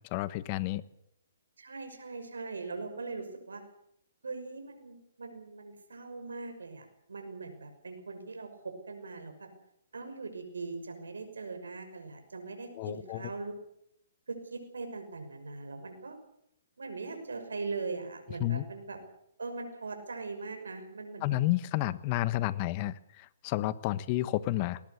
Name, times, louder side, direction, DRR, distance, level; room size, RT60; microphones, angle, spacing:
voice 1, 0.1-0.8 12.7-13.2 18.4-18.6 21.2-24.8, left 16 dB, 35° left, 16 dB, 1.2 m, -31 dB
voice 2, 1.6-3.6 4.2-9.5 9.9-13.5 14.3-16.2 16.8-19.0 19.4-21.4, right 3 dB, 85° right, 6 dB, 5.9 m, -41 dB
19.5 x 19.5 x 8.1 m, 0.79 s
hypercardioid pair, 140°, 0 cm